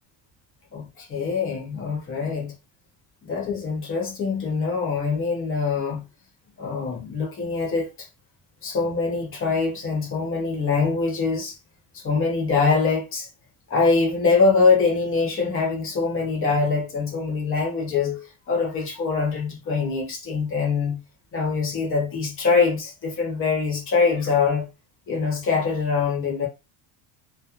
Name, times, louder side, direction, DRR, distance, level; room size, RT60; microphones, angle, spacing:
voice 1, 0.7-2.5 3.2-6.0 6.6-8.1 8.6-11.6 11.9-13.3 13.7-21.0 21.3-24.7 25.1-26.5, left 4 dB, 30° left, 0.9 m, -23 dB
3.0 x 2.1 x 2.4 m
cardioid pair, 170°, 45 cm